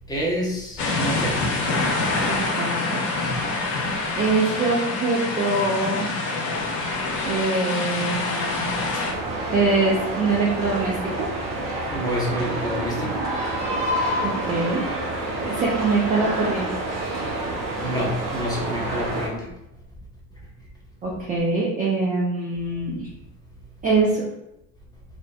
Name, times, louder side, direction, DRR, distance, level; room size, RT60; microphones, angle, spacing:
voice 1, 0.1-1.4 11.9-13.1 17.8-19.5, equal, 10° left, -5 dB, 0.8 m, -28 dB
sound 1, 0.8-9.1, left 3 dB, 60° left, 0.8 m, -26 dB
voice 2, 2.2-3.0 4.2-6.1 7.2-8.7 9.5-11.3 14.2-14.8 15.4-16.7 21.0-23.0 23.8-24.2, right 3 dB, 20° right, -4 dB, 0.4 m, -23 dB
sound 2, 9.1-19.3, right 1 dB, 45° right, 0.7 m, -28 dB
2.5 x 2.1 x 2.3 m, 0.86 s
hypercardioid pair, 60°, 50 cm